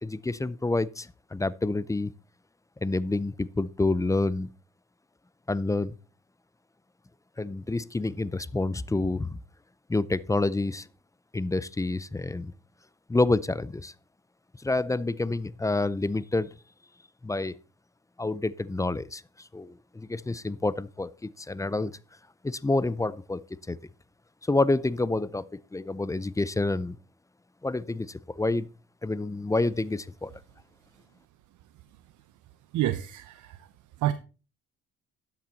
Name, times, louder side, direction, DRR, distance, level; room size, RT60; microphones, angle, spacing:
voice 1, 0.0-2.1 2.8-4.5 5.5-5.9 7.4-9.4 9.9-10.9 11.3-12.5 13.1-13.9 14.6-16.5 17.2-17.5 18.2-19.2 19.5-22.0 22.4-23.4 23.7-23.8 24.5-27.0 27.6-28.7 29.0-30.3, left 2 dB, 10° left, 0.5 m, -28 dB
voice 2, 32.7-33.7 34.0-34.1, right 13 dB, 80° right, 0.7 m, -28 dB
12.0 x 7.3 x 4.0 m
cardioid pair, 90°, 30 cm